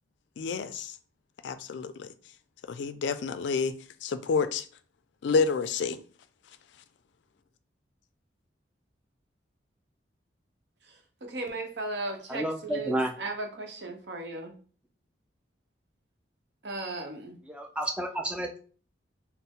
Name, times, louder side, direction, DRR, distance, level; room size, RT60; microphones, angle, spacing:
voice 1, 0.4-1.0 1.4-2.1 2.7-3.7 4.0-4.7 5.2-6.0, left 5 dB, 70° left, 0.3 m, -29 dB
voice 2, 10.9-14.5 16.6-17.4, right 2 dB, 65° right, 0.8 m, -36 dB
voice 3, 12.3-13.1 17.5-18.6, right 1 dB, 5° right, 0.4 m, -31 dB
4.1 x 2.0 x 3.6 m
head